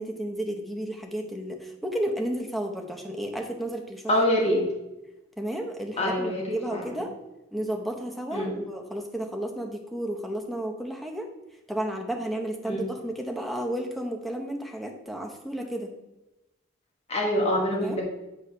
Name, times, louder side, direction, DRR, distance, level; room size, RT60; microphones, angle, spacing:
voice 1, 0.0-4.0 4.5-4.6 5.4-7.1 7.5-11.3 11.7-15.9 17.7-18.0, right 1 dB, ahead, 2 dB, 0.7 m, -32 dB
voice 2, 4.1-4.7 6.0-6.9 8.3-8.6 12.6-12.9 17.1-18.0, left 1 dB, 30° left, -2 dB, 1.3 m, -25 dB
8.4 x 3.1 x 5.5 m, 1.0 s
head